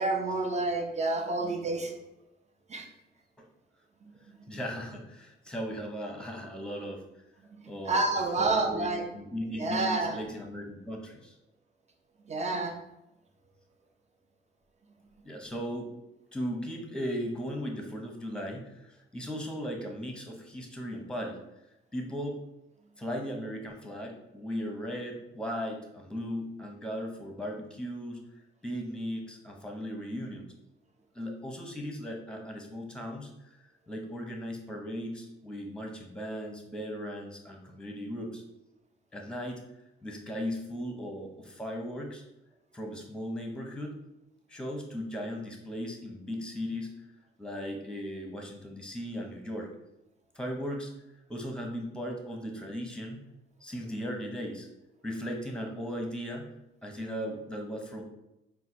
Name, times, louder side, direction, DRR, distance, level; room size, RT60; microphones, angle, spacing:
voice 1, 0.0-1.9 2.7-2.9 7.9-9.0 9.5-10.2 12.3-12.7, right 2 dB, 35° right, 2 dB, 0.8 m, -29 dB
voice 2, 4.1-7.0 7.6-11.4 15.2-16.0 16.3-21.4 21.9-22.4 23.0-28.3 28.6-30.5 31.1-33.3 33.9-38.4 39.1-39.6 40.0-42.2 42.7-44.0 44.5-47.0 47.4-49.7 50.3-50.9 51.3-53.2 53.6-54.7 55.0-56.5 56.8-58.0, equal, 5° left, 2 dB, 0.9 m, -37 dB
4.2 x 2.3 x 4.3 m, 0.90 s
cardioid pair, 90°, 20 cm